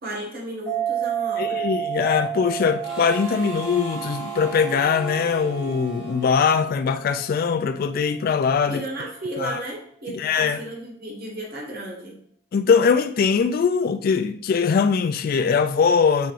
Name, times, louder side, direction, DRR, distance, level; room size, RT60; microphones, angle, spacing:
voice 1, 0.0-1.7 8.7-12.2, right 1 dB, 50° right, 1.4 m, -34 dB
sound 1, 0.7-7.7, right 10 dB, 10° left, 1.2 m, -32 dB
voice 2, 1.4-8.8 9.4-9.6 10.1-10.6 12.5-16.3, left 6 dB, 50° left, 0.3 m, -21 dB
Harmonica, 2.8-7.3, right 3 dB, 75° right, 1.8 m, -38 dB
4.7 x 4.3 x 2.5 m
head